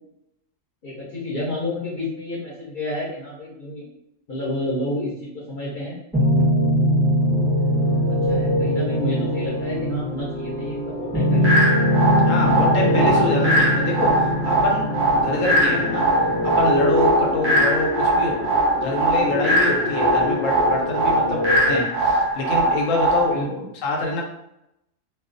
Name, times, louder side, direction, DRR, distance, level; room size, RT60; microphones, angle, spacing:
voice 1, 0.8-3.9 4.3-5.9 7.3-7.6 8.1-11.6 17.4-17.6 23.3-23.7, left 1 dB, 50° left, -6 dB, 0.7 m, -30 dB
sound 1, 6.1-21.8, equal, 5° right, 0.9 m, -22 dB
sound 2, 11.4-23.4, right 1 dB, 65° right, 0.8 m, -21 dB
voice 2, 12.3-14.9 15.2-16.0 16.4-18.5 18.8-23.4 23.8-24.2, left 2 dB, 85° left, 0 dB, 1.0 m, -26 dB
2.3 x 2.3 x 2.4 m, 0.81 s
omnidirectional pair, 1.3 m